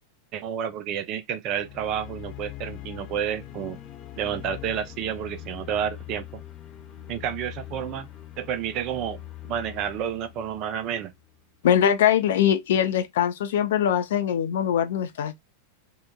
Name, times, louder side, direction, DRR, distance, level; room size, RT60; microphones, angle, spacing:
voice 1, 0.3-3.8 4.2-6.4 7.1-8.1 8.4-11.1, right 9 dB, 40° right, 0.4 m, -30 dB
sound 1, 1.5-11.6, left 13 dB, 30° left, 0.8 m, -42 dB
voice 2, 11.6-15.4, left 9 dB, 60° left, 0.4 m, -22 dB
2.8 x 2.0 x 2.2 m
figure-of-eight pair, 90°, 0 cm